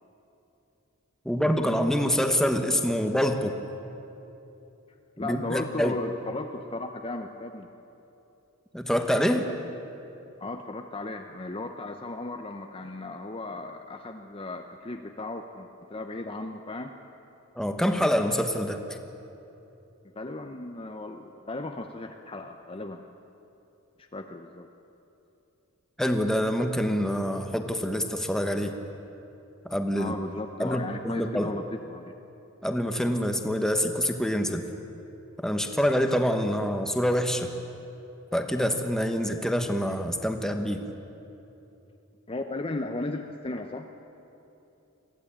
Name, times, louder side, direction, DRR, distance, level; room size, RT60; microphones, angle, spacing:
voice 1, 1.2-3.5 5.2-5.9 8.7-9.4 17.6-18.8 26.0-28.8 29.6-30.1 30.6-31.5 32.6-34.6 35.4-37.5 38.3-40.8, equal, ahead, 5 dB, 1.2 m, -26 dB
voice 2, 5.2-7.7 10.4-16.9 20.1-23.0 24.0-24.7 30.0-32.1 42.3-43.9, left 2 dB, 25° left, 4 dB, 0.7 m, -36 dB
22.0 x 15.5 x 8.7 m, 2.9 s
head